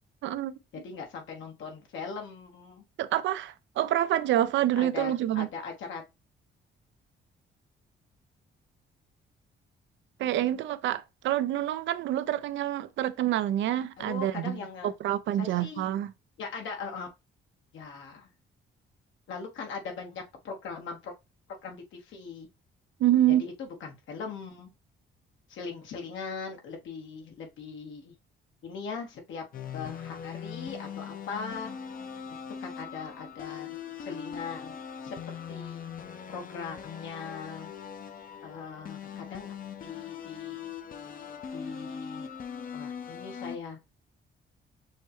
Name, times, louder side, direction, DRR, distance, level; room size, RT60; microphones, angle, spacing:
voice 1, 0.2-0.5 3.0-5.5 10.2-14.6 14.8-16.1 23.0-23.4, right 12 dB, 70° right, 0.4 m, -27 dB
voice 2, 0.8-2.8 4.8-6.0 14.0-14.9 15.4-15.9 16.4-17.1 17.7-18.3 19.3-21.1 21.6-22.5 23.3-24.7 25.5-28.1 28.6-29.4 29.7-31.7 32.6-34.7 35.0-35.2 35.5-35.9 36.3-37.7 38.4-39.5 39.8-40.7 41.5-42.3 42.7-43.8, left 5 dB, 75° left, 1.3 m, -40 dB
sound 1, 29.5-43.6, left 7 dB, 45° left, 0.6 m, -41 dB
6.3 x 2.2 x 3.0 m
cardioid pair, 90°, 20 cm